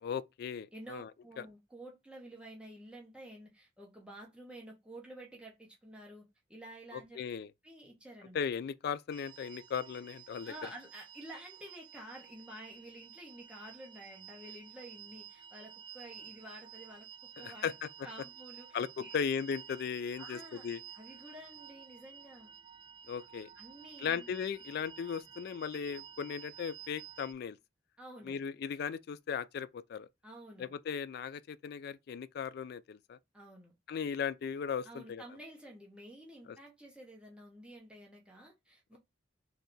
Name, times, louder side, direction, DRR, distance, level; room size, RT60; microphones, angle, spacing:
voice 1, 0.0-1.1 1.4-1.5 6.9-7.5 8.3-10.5 17.4-17.9 18.7-20.8 23.1-23.5 24.0-27.6 28.2-30.1 30.6-33.2 33.9-35.2 36.5-36.6, left 7 dB, 60° left, 0.3 m, -37 dB
voice 2, 0.7-6.2 6.5-7.2 7.6-8.4 10.4-17.1 17.4-17.7 18.0-19.2 20.2-20.7 20.9-22.5 23.6-24.3 28.0-28.4 30.2-30.7 33.3-33.7 34.8-39.0, right 1 dB, 5° right, 0.9 m, -50 dB
sound 1, 9.1-27.3, right 9 dB, 25° right, 0.4 m, -52 dB
3.3 x 2.7 x 3.9 m
head